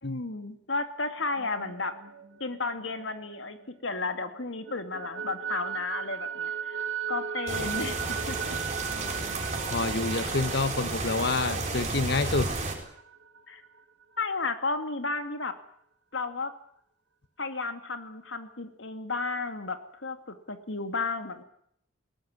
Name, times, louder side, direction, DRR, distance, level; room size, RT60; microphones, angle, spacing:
voice 1, 0.0-2.0 2.4-6.8 7.1-8.6 13.5-13.6 14.2-15.5 16.1-16.5 17.4-21.4, left 3 dB, 80° left, 8 dB, 2.4 m, -33 dB
sound 1, 1.2-4.0 4.4-13.8, right 7 dB, 90° right, 1.7 m, -38 dB
sound 2, 7.5-12.8, right 3 dB, 35° right, 6.8 m, -32 dB
voice 2, 8.9-12.5, left 3 dB, 60° left, 13 dB, 1.3 m, -29 dB
20.5 x 18.5 x 9.6 m, 0.68 s
head